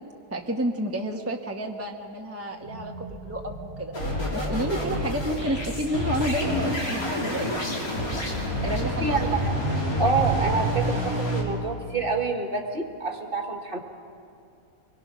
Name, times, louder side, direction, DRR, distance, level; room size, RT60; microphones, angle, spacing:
voice 1, 0.3-3.9 4.3-7.6 8.5-9.3, equal, 10° right, 1 dB, 1.0 m, -30 dB
sound 1, 2.6-9.3, right 1 dB, 40° left, 2.6 m, -40 dB
sound 2, 3.9-11.4, equal, 70° left, 3.6 m, -28 dB
voice 2, 8.6-9.6 10.0-13.8, right 4 dB, 40° right, 4 dB, 1.7 m, -27 dB
24.5 x 22.0 x 6.2 m, 2.5 s
omnidirectional pair, 1.6 m